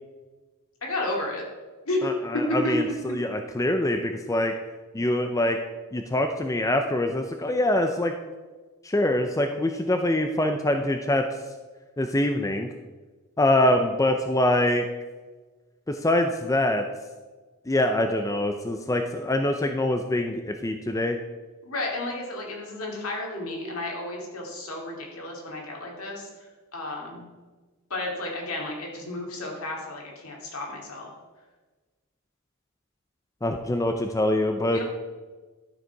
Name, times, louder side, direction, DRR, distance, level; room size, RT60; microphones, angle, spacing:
voice 1, 0.8-1.4 1.9-2.1 2.6-2.8 21.7-26.3 26.7-27.3 27.9-31.1 34.7-34.8, left 2 dB, 70° left, -1 dB, 2.5 m, -32 dB
voice 2, 2.0-4.5 4.9-5.6 5.9-8.1 8.8-11.2 12.0-12.7 13.4-14.9 15.9-16.8 17.7-21.2 33.4-34.8, left 1 dB, 15° left, 5 dB, 0.5 m, -24 dB
12.0 x 6.6 x 4.6 m, 1.3 s
head